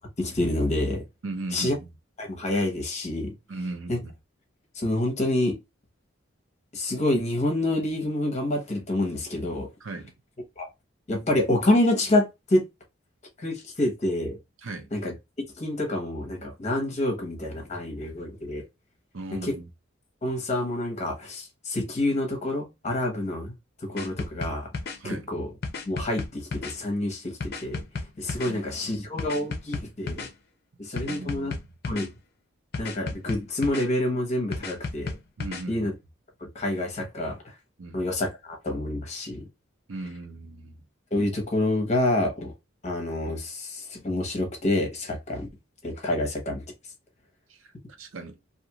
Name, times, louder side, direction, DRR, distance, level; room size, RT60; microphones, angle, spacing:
voice 1, 0.2-1.0 1.5-1.7 2.2-3.3 3.9-4.0 4.8-5.6 6.7-9.7 10.6-10.7 11.1-12.6 13.4-14.4 14.9-15.1 15.6-18.6 19.3-19.5 20.2-23.5 23.8-24.7 25.3-25.5 25.9-27.8 28.2-30.3 30.8-31.5 31.9-32.1 32.8-35.1 35.7-35.9 36.4-37.4 37.9-39.4 41.1-42.5 42.8-45.5 45.8-46.6, left 1 dB, 35° left, 0.9 m, -27 dB
voice 2, 1.2-1.9 3.5-4.1 9.8-10.1 14.6-14.9 19.1-19.7 25.0-25.3 28.4-29.1 31.1-31.5 35.4-35.9 37.8-38.1 39.9-40.8 47.5-47.7 48.0-48.4, right 2 dB, 80° right, 0.7 m, -37 dB
sound 1, 24.0-25.0 25.6-26.7 27.4-28.5 29.2-30.3 31.0-32.1 32.7-33.8 34.5-35.6, left 3 dB, 50° left, 0.6 m, -33 dB
2.6 x 2.4 x 2.9 m
head